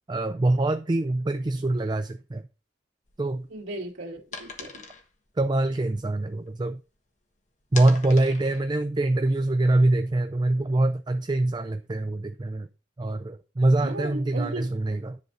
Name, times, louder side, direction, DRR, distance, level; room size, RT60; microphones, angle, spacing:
voice 1, 0.1-2.4 3.2-3.5 5.4-6.8 7.7-12.7 13.0-15.2, right 2 dB, 25° right, 0.4 m, -24 dB
sound 1, 3.1-7.1 7.4-10.1, left 5 dB, 40° left, 1.4 m, -43 dB
voice 2, 3.5-4.8 13.8-14.7, right 1 dB, 90° right, 2.2 m, -36 dB
10.5 x 3.9 x 5.4 m
head